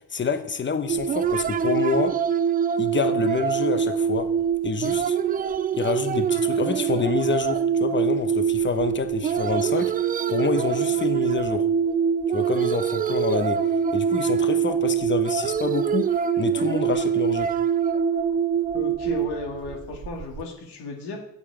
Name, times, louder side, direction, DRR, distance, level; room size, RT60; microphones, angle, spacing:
voice 1, 0.1-2.1 2.8-4.3 4.6-5.2 5.7-9.9 10.3-11.6 12.3-13.6 13.9-16.1 16.4-17.5, left 5 dB, 25° left, 9 dB, 1.2 m, -27 dB
sound 1, 0.9-20.4, right 8 dB, 20° right, 0.4 m, -24 dB
voice 2, 18.7-21.2, left 4 dB, 55° left, 1 dB, 2.2 m, -34 dB
8.5 x 6.9 x 4.9 m, 0.74 s
hypercardioid pair, 55°, 48 cm